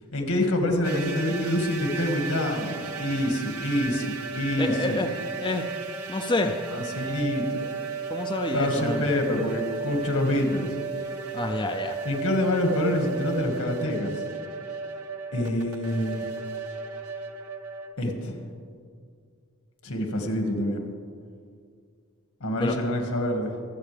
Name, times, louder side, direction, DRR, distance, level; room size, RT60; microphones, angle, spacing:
voice 1, 0.1-5.0 6.7-7.6 8.5-10.7 12.0-14.2 15.3-16.3 18.0-18.4 19.8-20.8 22.4-23.5, left 1 dB, 80° left, 3 dB, 1.9 m, -26 dB
sound 1, 0.8-17.9, right 4 dB, 85° right, 0.9 m, -34 dB
voice 2, 4.6-5.1 5.4-5.7 6.1-6.6 8.1-9.1 11.3-12.0 22.5-22.7, left 2 dB, 20° left, 3 dB, 0.5 m, -28 dB
24.5 x 8.3 x 3.4 m, 2.2 s
head